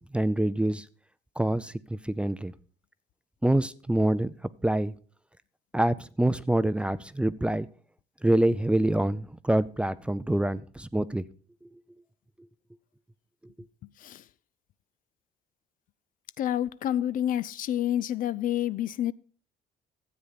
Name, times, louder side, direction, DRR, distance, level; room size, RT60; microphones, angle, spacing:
voice 1, 0.1-0.8 1.4-2.5 3.4-4.3 4.6-4.9 5.7-7.7 8.2-11.2, right 1 dB, 5° right, 0.4 m, -26 dB
voice 2, 16.4-19.1, left 11 dB, 55° left, 0.4 m, -28 dB
13.0 x 8.3 x 4.1 m
cardioid pair, 110°, 17 cm